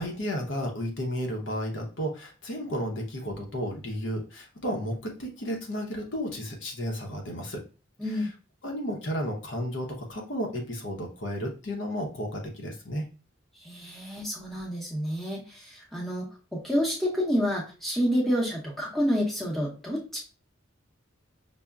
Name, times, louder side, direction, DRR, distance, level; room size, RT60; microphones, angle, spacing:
voice 1, 0.0-7.6 8.1-8.3 8.6-13.0, equal, 65° left, 0 dB, 0.8 m, -33 dB
voice 2, 8.0-8.3 13.6-20.2, equal, ahead, -4 dB, 0.7 m, -29 dB
5.3 x 2.0 x 2.3 m, 0.34 s
head